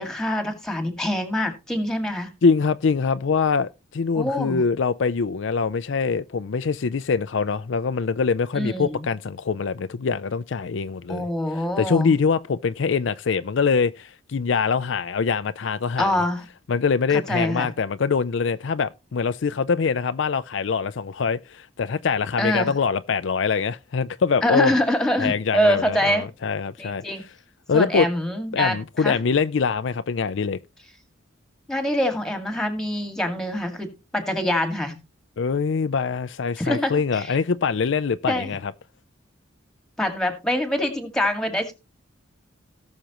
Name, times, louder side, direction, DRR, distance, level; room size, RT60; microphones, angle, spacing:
voice 1, 0.0-2.3 4.1-4.6 8.5-9.0 11.1-12.1 16.0-16.4 17.1-17.7 22.4-22.7 24.4-26.3 26.8-27.2 27.7-29.2 31.7-35.0 36.6-37.4 38.3-38.5 40.0-41.7, left 1 dB, 5° left, 2.0 m, -25 dB
voice 2, 2.4-11.3 11.8-16.2 16.7-24.7 25.2-27.0 27.7-28.1 28.5-30.6 35.4-38.7, left 5 dB, 60° left, 0.4 m, -24 dB
18.0 x 6.5 x 3.0 m
head